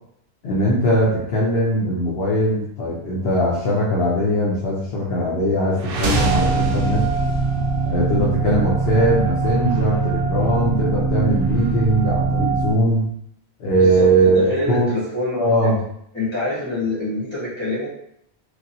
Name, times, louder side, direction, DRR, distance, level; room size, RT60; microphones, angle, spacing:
voice 1, 0.4-7.0 7.8-13.0 13.6-14.9 15.3-15.8, right 1 dB, 65° left, -6 dB, 0.9 m, -20 dB
sound 1, 5.7-9.7, right 2 dB, 60° right, 0.7 m, -27 dB
sound 2, 6.1-12.7, right 4 dB, ahead, 0.4 m, -22 dB
voice 2, 14.3-15.7 16.1-17.9, left 2 dB, 25° left, -9 dB, 1.3 m, -25 dB
3.0 x 2.6 x 2.7 m, 0.72 s
omnidirectional pair, 1.1 m